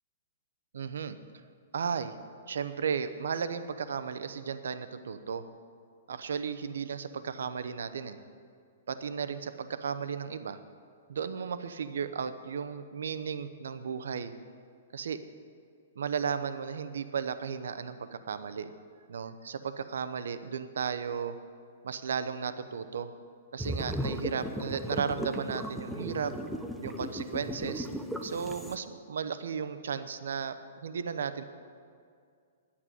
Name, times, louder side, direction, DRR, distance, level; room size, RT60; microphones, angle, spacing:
voice 1, 0.7-1.2 1.7-2.1 2.5-5.4 6.1-8.2 8.9-10.6 11.1-14.3 14.9-15.2 16.0-18.7 19.1-21.4 21.8-23.1 23.5-26.3 26.8-27.9 28.2-31.4, right 6 dB, 80° right, 11 dB, 0.8 m, -34 dB
sound 1, 23.6-28.8, equal, ahead, 0.4 m, -36 dB
11.0 x 8.7 x 9.9 m, 2.2 s
hypercardioid pair, 175°, 0 cm